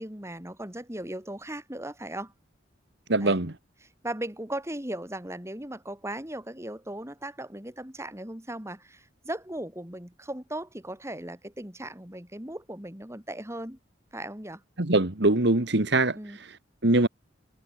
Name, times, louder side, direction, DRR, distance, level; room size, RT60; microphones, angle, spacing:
voice 1, 0.0-2.3 3.2-3.4 4.0-13.8 14.1-14.6 16.2-16.4, right 1 dB, 15° right, 3.6 m, -37 dB
voice 2, 3.1-3.5 14.8-16.2 16.8-17.1, right 2 dB, 60° right, 1.8 m, -22 dB
head